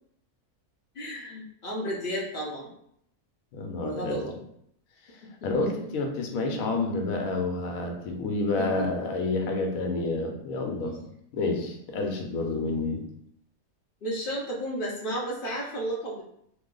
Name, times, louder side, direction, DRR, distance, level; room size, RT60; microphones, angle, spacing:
voice 1, 0.9-2.7 3.8-4.3 5.6-5.9 8.6-9.1 10.8-11.1 14.0-16.2, equal, 55° left, -2 dB, 0.6 m, -33 dB
voice 2, 3.5-4.2 5.4-11.0 11.3-13.0, left 3 dB, 75° left, 3 dB, 1.0 m, -29 dB
3.0 x 2.0 x 3.7 m, 0.73 s
omnidirectional pair, 1.5 m